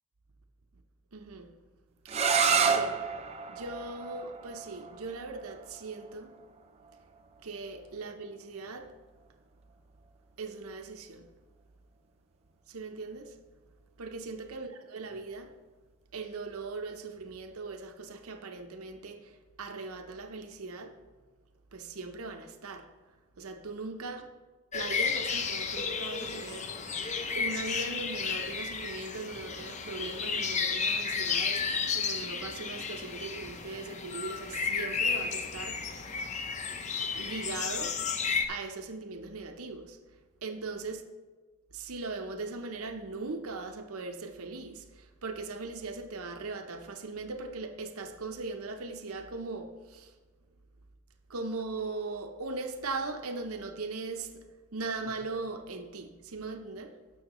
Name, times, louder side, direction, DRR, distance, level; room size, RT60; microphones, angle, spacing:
voice 1, 1.1-1.5 2.0-2.2 2.6-3.0 3.5-6.3 7.4-8.9 10.4-11.3 12.7-13.4 14.0-15.6 16.1-21.0 21.7-22.9 23.4-24.3 24.7-26.8 27.3-36.2 37.0-38.0 38.5-40.0 40.4-41.0 41.7-50.2 51.3-57.0, right 3 dB, 75° right, 0.7 m, -39 dB
sound 1, 2.1-7.8, right 6 dB, 30° right, 0.5 m, -31 dB
sound 2, 24.7-38.5, left 5 dB, 30° left, 0.6 m, -33 dB
17.0 x 6.3 x 3.0 m
head